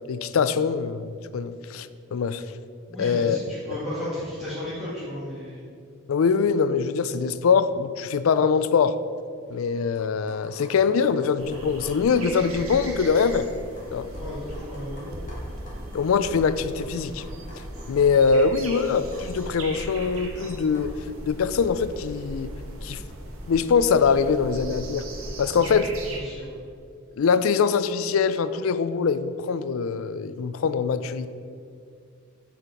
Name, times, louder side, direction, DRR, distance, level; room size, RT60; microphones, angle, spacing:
voice 1, 0.1-2.4 3.0-3.4 3.7-3.8 6.1-9.0 9.5-13.5 13.9-14.1 15.9-17.2 17.9-20.9 21.3-22.5 22.8-23.0 23.5-25.1 25.4-25.9 27.1-31.3, left 5 dB, 80° left, 14 dB, 0.4 m, -23 dB
voice 2, 2.9-5.6 14.1-15.1 25.5-26.6, left 1 dB, ahead, -14 dB, 2.0 m, -35 dB
sound 1, 9.4-20.9, equal, 40° left, 1.8 m, -48 dB
sound 2, 11.4-26.2, right 1 dB, 90° right, 1.1 m, -38 dB
8.4 x 4.6 x 5.1 m, 2.3 s
head